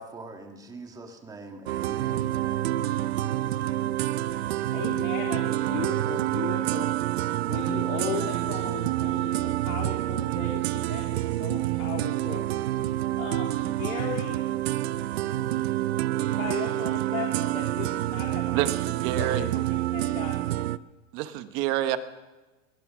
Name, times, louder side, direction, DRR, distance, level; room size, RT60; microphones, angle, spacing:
voice 1, 0.0-3.0, right 2 dB, 10° right, 4 dB, 1.7 m, -44 dB
sound 1, 1.7-20.8, right 15 dB, 50° right, 0.6 m, -28 dB
voice 2, 4.2-6.9 7.5-12.4 13.2-14.4 16.2-20.3, left 8 dB, 85° left, 1 dB, 3.4 m, -37 dB
voice 3, 18.5-19.5 21.1-22.0, right 13 dB, 30° right, 11 dB, 1.0 m, -28 dB
21.5 x 20.0 x 6.1 m, 1.2 s
supercardioid pair, 165°, 39 cm